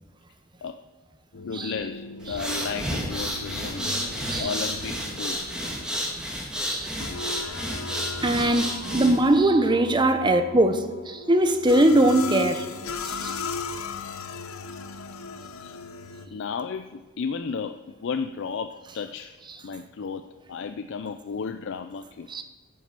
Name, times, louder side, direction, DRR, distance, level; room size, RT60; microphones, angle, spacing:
sound 1, 1.3-16.3, left 4 dB, 85° left, 0.7 m, -37 dB
voice 1, 1.5-3.9 4.4-5.5 15.6-15.8 16.2-19.3 19.6-22.3, left 5 dB, 60° left, 0.4 m, -33 dB
sound 2, 2.2-9.4, equal, 5° right, 1.7 m, -31 dB
voice 2, 6.6-7.0 8.2-12.7 13.0-13.4 22.3-22.4, right 1 dB, 20° right, 0.7 m, -21 dB
9.4 x 7.2 x 7.4 m
head